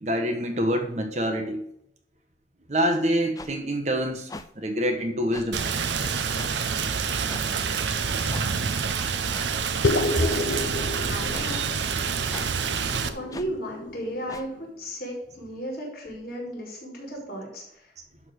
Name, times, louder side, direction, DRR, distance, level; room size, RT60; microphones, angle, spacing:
voice 1, 0.0-1.6 2.7-4.3 4.6-5.6, equal, 40° right, 5 dB, 1.2 m, -26 dB
sound 1, 3.4-3.5 4.3-4.5 5.3-5.5 6.3-6.5 7.3-7.5 8.3-8.5 9.3-9.5 10.3-10.4 11.3-11.5 12.3-12.5 13.3-13.5 14.3-14.5, left 2 dB, 20° left, 0.4 m, -40 dB
Rain, 5.5-13.1, right 6 dB, 85° right, 0.7 m, -27 dB
sound 2, 9.8-14.6, left 2 dB, 90° left, 0.6 m, -30 dB
voice 2, 10.1-10.5 10.8-11.6 13.1-17.9, equal, 55° left, -2 dB, 4.3 m, -35 dB
11.5 x 3.8 x 6.4 m, 0.73 s
head